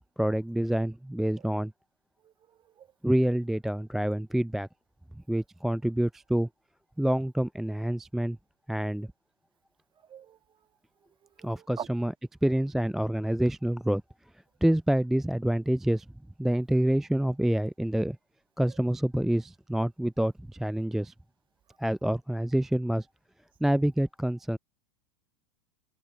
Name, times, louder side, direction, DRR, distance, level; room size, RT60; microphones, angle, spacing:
voice 1, 0.2-1.7 3.0-4.7 5.3-6.5 7.0-8.4 8.7-9.1 11.4-12.1 12.4-14.0 14.6-16.1 16.4-18.2 18.6-21.1 21.8-23.1 23.6-24.6, right 1 dB, ahead, 0.3 m, -27 dB
voice 2, 2.2-2.9 10.0-10.4 11.4-11.9, right 9 dB, 30° right, 1.6 m, -44 dB
hypercardioid pair, 90°, 17 cm